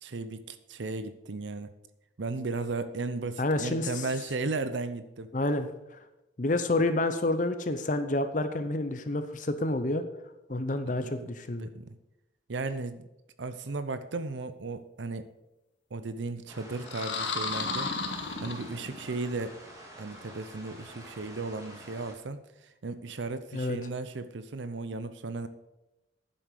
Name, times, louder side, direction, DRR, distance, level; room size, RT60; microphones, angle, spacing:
voice 1, 0.0-1.7 2.2-5.3 11.0-11.3 11.6-12.0 12.5-13.1 13.4-15.3 15.9-17.9 18.4-19.6 20.0-25.5, right 3 dB, 80° right, 12 dB, 0.7 m, -35 dB
voice 2, 3.4-4.0 5.3-5.7 6.4-10.0 10.5-11.7 23.5-23.8, left 2 dB, 45° left, 9 dB, 0.8 m, -29 dB
sound 1, 16.5-22.1, right 1 dB, 20° right, 2.5 m, -48 dB
sound 2, 16.8-19.1, left 3 dB, 80° left, 1.6 m, -33 dB
10.0 x 7.8 x 6.7 m, 0.94 s
head